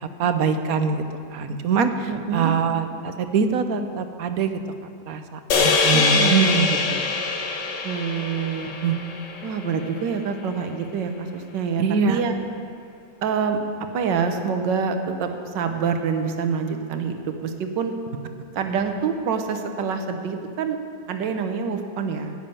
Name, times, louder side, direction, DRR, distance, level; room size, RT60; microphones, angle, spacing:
voice 1, 0.2-1.0 1.3-4.5 5.1-7.1 8.8-8.9 11.8-12.2, right 5 dB, 65° right, 9 dB, 1.0 m, -23 dB
voice 2, 2.1-2.5 5.9-6.6 7.8-8.7 9.4-12.4 13.2-13.6 13.9-17.9 18.5-20.8 21.1-22.3, right 6 dB, 80° right, 6 dB, 1.6 m, -26 dB
sound 1, 5.5-9.9, left 4 dB, 80° left, 1.7 m, -23 dB
11.0 x 7.0 x 9.1 m, 2.3 s
omnidirectional pair, 1.9 m